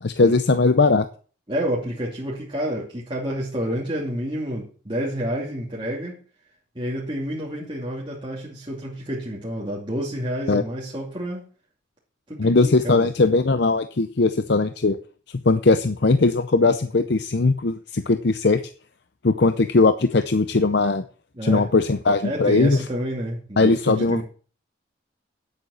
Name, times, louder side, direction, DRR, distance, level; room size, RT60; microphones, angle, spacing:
voice 1, 0.0-1.1 10.5-10.6 12.4-15.0 15.4-18.6 19.2-21.0 21.4-22.8 23.6-24.2, left 3 dB, 55° left, 0.6 m, -19 dB
voice 2, 1.5-6.2 6.7-11.5 12.3-13.1 21.3-21.7 22.2-24.2, equal, 25° right, 2.7 m, -29 dB
9.7 x 8.4 x 6.4 m
head